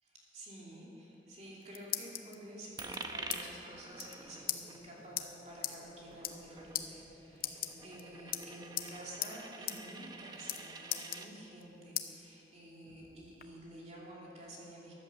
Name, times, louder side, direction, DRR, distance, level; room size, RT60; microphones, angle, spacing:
voice 1, 0.0-14.9, right 1 dB, 40° right, -4 dB, 2.9 m, -50 dB
sound 1, 1.3-2.4 2.9-3.4 3.7-3.8 4.0-4.2 4.5-4.6 5.2-5.3 5.6-5.8 6.1-6.5 6.7-6.9 7.4-8.0 8.3-8.9 9.2-9.3 9.7-9.8 10.1-10.6 10.9-11.6 12.0-12.1 12.6-13.5, left 11 dB, 50° left, 0.8 m, -38 dB
Coin (dropping), 2.8-11.3, right 3 dB, 20° right, 0.8 m, -48 dB
sound 2, 3.1-8.9, equal, 15° left, 2.3 m, -61 dB
14.0 x 10.5 x 7.3 m, 2.9 s
head